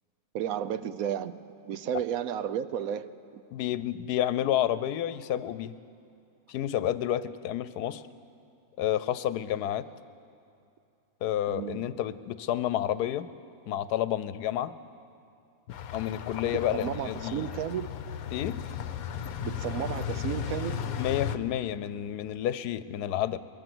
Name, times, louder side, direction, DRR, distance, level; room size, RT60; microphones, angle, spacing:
voice 1, 0.3-1.4 1.7-3.1 11.5-11.8 16.7-17.9 19.4-20.8, right 9 dB, 70° right, 13 dB, 1.0 m, -32 dB
voice 2, 3.5-5.8 6.5-8.0 8.8-9.9 11.2-13.3 13.7-14.7 15.9-17.5 18.3-18.6 21.0-23.4, left 11 dB, 90° left, 15 dB, 1.2 m, -30 dB
sound 1, 15.7-21.4, left 9 dB, 70° left, 1.2 m, -35 dB
22.0 x 20.5 x 6.1 m, 2.5 s
omnidirectional pair, 1.6 m